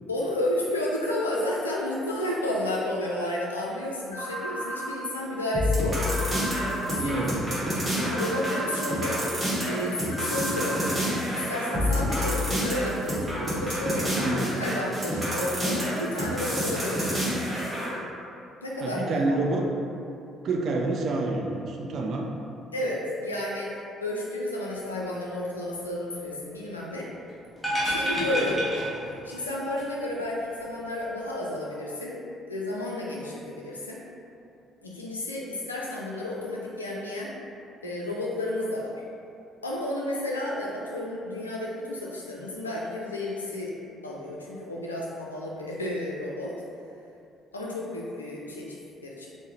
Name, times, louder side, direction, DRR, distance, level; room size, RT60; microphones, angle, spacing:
voice 1, 0.1-6.0 6.9-7.3 8.0-9.2 9.6-17.1 18.6-19.4 22.7-23.7 24.0-27.1 27.8-28.8 29.2-32.2 32.5-34.0 34.8-37.3 37.8-38.9 39.6-43.7 44.0-46.5 47.5-49.3, left 1 dB, 85° left, -4 dB, 0.3 m, -31 dB
sound 1, 4.1-4.9 6.1-6.9 8.1-8.9 10.1-10.9, right 1 dB, 80° right, 0.8 m, -35 dB
sound 2, 5.5-17.9, equal, 20° right, 1.1 m, -28 dB
voice 2, 7.0-7.4 14.1-14.5 18.8-19.7 20.4-22.3, right 2 dB, 50° right, 0 dB, 0.4 m, -28 dB
sound 3, 27.6-29.5 29.8-29.9, equal, 5° left, 1.0 m, -29 dB
3.5 x 2.0 x 3.2 m, 2.6 s
figure-of-eight pair, 50°, 0 cm